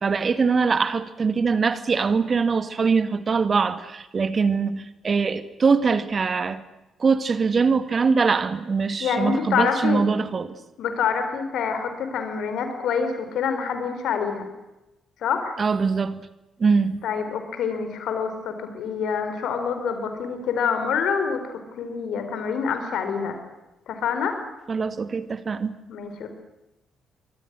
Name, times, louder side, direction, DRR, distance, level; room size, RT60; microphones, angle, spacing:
voice 1, 0.0-6.6 7.0-10.6 15.6-16.3 16.6-17.0 24.7-25.8, right 5 dB, 40° right, 12 dB, 2.2 m, -22 dB
voice 2, 9.0-10.1 10.8-14.5 15.2-15.6 17.0-23.4 23.9-24.4 25.9-26.3, left 6 dB, 60° left, 7 dB, 4.8 m, -26 dB
29.0 x 24.5 x 6.4 m, 0.98 s
figure-of-eight pair, 40°, 0 cm